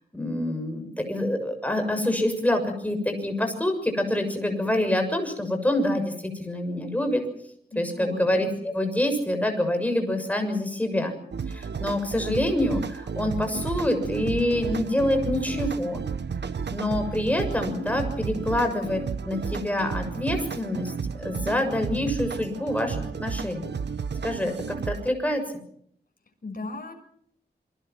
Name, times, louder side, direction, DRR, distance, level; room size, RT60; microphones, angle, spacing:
voice 1, 0.1-7.2 7.7-11.2 11.5-16.0 16.7-23.7 24.2-25.4, left 1 dB, 10° left, 5 dB, 6.8 m, -26 dB
voice 2, 7.7-8.2 26.4-26.9, left 3 dB, 55° left, 4 dB, 6.4 m, -36 dB
sound 1, 11.3-25.1, right 6 dB, 80° right, 1.1 m, -33 dB
28.0 x 23.0 x 6.1 m, 0.66 s
wide cardioid pair, 100°, 17 cm